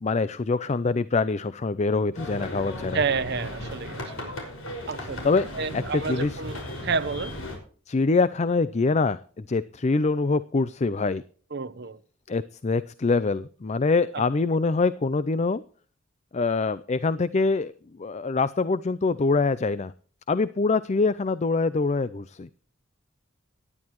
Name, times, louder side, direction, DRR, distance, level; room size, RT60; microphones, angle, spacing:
voice 1, 0.0-3.0 5.0-5.5 5.9-6.4 7.9-11.2 12.3-15.6 16.3-17.7 18.0-19.9 20.3-22.5, left 3 dB, 35° left, 0.5 m, -24 dB
sound 1, 2.1-7.6, left 1 dB, 85° left, 5.6 m, -36 dB
voice 2, 2.9-4.3 4.9-5.3 5.5-7.3 11.5-12.0, right 5 dB, 55° right, 0.9 m, -30 dB
18.0 x 11.0 x 3.1 m
head